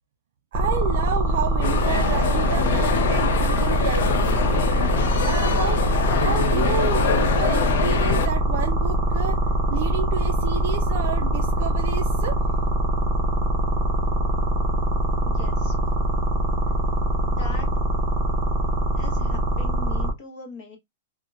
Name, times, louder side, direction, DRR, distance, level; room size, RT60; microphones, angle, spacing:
sound 1, 0.5-20.1, right 1 dB, 20° right, 0.7 m, -23 dB
voice 1, 0.5-4.3 5.2-5.8 6.1-9.4 9.7-12.4, right 7 dB, 55° right, 0.3 m, -30 dB
sound 2, 1.6-8.3, left 8 dB, 60° left, 0.4 m, -25 dB
voice 2, 15.2-15.7 17.2-17.7 18.9-20.8, left 3 dB, 35° left, 0.9 m, -40 dB
2.8 x 2.1 x 2.3 m
supercardioid pair, 165°, 0 cm